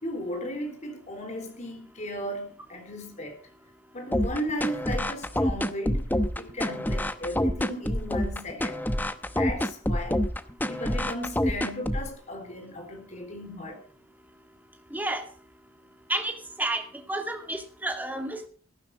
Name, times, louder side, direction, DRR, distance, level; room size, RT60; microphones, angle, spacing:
voice 1, 0.0-3.4 3.9-6.1 6.4-8.9 9.3-10.2 10.7-13.8, equal, 35° left, 4.0 m, -35 dB
sound 1, 4.1-12.1, left 1 dB, 10° left, 0.8 m, -27 dB
voice 2, 14.9-15.3 16.1-18.5, right 1 dB, 10° right, 2.3 m, -31 dB
14.0 x 12.5 x 4.8 m
head